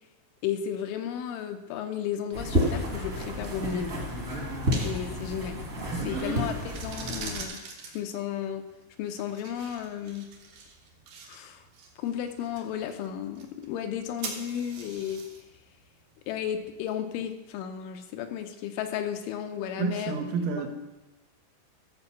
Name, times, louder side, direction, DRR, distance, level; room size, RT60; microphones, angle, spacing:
voice 1, 0.4-3.9 4.8-5.6 6.1-7.6 7.9-8.6 9.0-10.3 11.3-11.6 12.0-15.2 16.3-20.3, left 9 dB, 80° left, 6 dB, 3.0 m, -33 dB
sound 1, 2.3-7.4, equal, 35° right, 1.2 m, -30 dB
voice 2, 5.9-6.3 19.8-20.7, right 5 dB, 85° right, 4 dB, 3.8 m, -30 dB
sound 2, 6.6-17.3, right 5 dB, 65° right, 2.0 m, -45 dB
14.5 x 5.3 x 7.1 m, 1.0 s
omnidirectional pair, 5.8 m